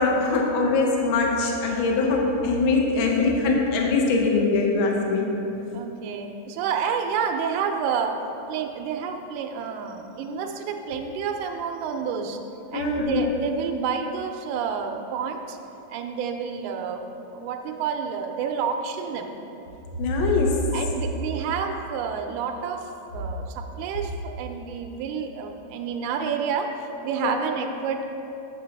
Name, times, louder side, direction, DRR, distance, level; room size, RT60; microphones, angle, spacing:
voice 1, 0.0-5.3 12.7-13.4 20.0-20.6 27.2-27.4, left 3 dB, 90° left, 0 dB, 1.1 m, -22 dB
voice 2, 5.7-8.2 8.5-12.4 12.7-15.6 15.9-17.0 17.3-19.3 20.7-28.0, right 6 dB, 90° right, 5 dB, 2.0 m, -29 dB
9.0 x 6.4 x 3.4 m, 3.0 s
omnidirectional pair, 3.4 m